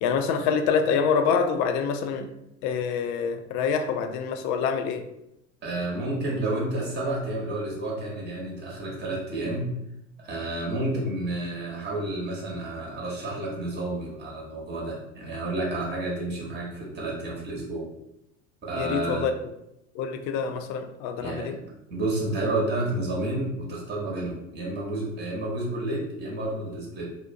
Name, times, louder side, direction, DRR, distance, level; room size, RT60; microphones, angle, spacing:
voice 1, 0.0-2.3 2.6-5.1 18.8-19.3 19.9-21.6, left 6 dB, 50° left, 7 dB, 0.4 m, -26 dB
voice 2, 5.6-9.7 10.2-17.9 18.6-19.3 21.2-21.5 21.9-27.0, right 2 dB, 25° right, -3 dB, 1.0 m, -30 dB
2.6 x 2.1 x 2.6 m, 0.84 s
hypercardioid pair, 75°, 38 cm